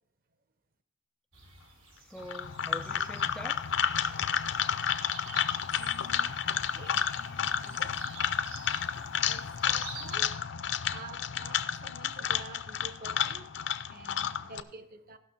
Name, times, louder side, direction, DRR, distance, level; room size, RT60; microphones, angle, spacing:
sound 1, 1.3-10.2, right 4 dB, 85° right, 2.4 m, -50 dB
voice 1, 2.0-3.6 4.5-4.9, equal, 5° left, 0.3 m, -45 dB
sound 2, 2.2-14.6, left 8 dB, 60° left, 0.5 m, -31 dB
voice 2, 5.8-8.5 9.2-10.4 10.9-15.2, right 2 dB, 45° right, 0.8 m, -49 dB
15.0 x 6.1 x 5.5 m
head